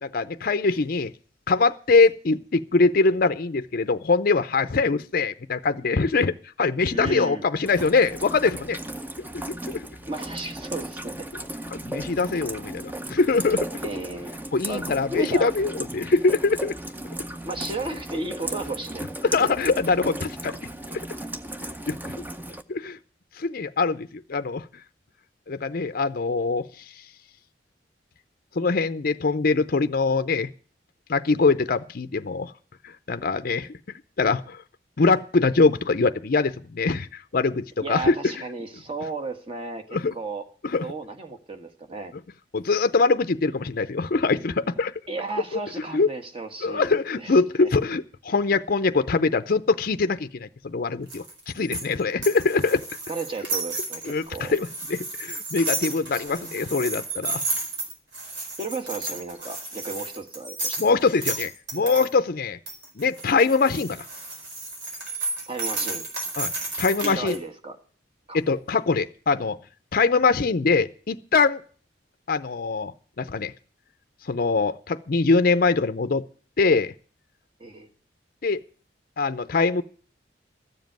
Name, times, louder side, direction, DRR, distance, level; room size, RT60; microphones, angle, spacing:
voice 1, 0.0-1.1 1.5-8.8 9.3-9.8 11.7-13.7 14.5-16.8 19.2-20.6 20.9-21.0 21.9-22.2 22.7-23.0 23.4-24.7 25.5-26.7 28.6-30.5 31.1-32.5 33.1-33.8 34.2-34.6 35.0-38.3 39.9-40.1 40.6-40.8 42.5-44.9 45.9-46.1 46.6-51.2 51.5-52.8 54.1-57.4 60.8-62.6 63.0-64.0 66.4-66.5 66.8-67.3 68.3-69.6 69.9-71.6 72.3-72.9 73.2-73.5 74.3-76.3 76.6-76.9 78.4-78.6 79.2-79.8, left 4 dB, 55° left, 11 dB, 0.6 m, -23 dB
voice 2, 6.9-7.5 10.1-11.3 13.8-14.4 14.7-15.5 17.4-19.1 19.4-19.8 37.8-39.8 40.1-40.4 40.8-42.1 45.1-47.7 53.1-54.5 56.1-56.5 58.6-60.8 61.3-61.4 65.1-65.2 65.5-66.0 67.0-67.8 68.3-68.4 77.6-77.9, right 3 dB, 30° right, 6 dB, 1.5 m, -34 dB
Rain, 7.6-22.6, right 1 dB, 10° right, 0.7 m, -36 dB
sound 1, 51.1-62.1 62.7-67.4, right 3 dB, 80° right, 4.3 m, -32 dB
13.5 x 7.4 x 9.1 m, 0.43 s
head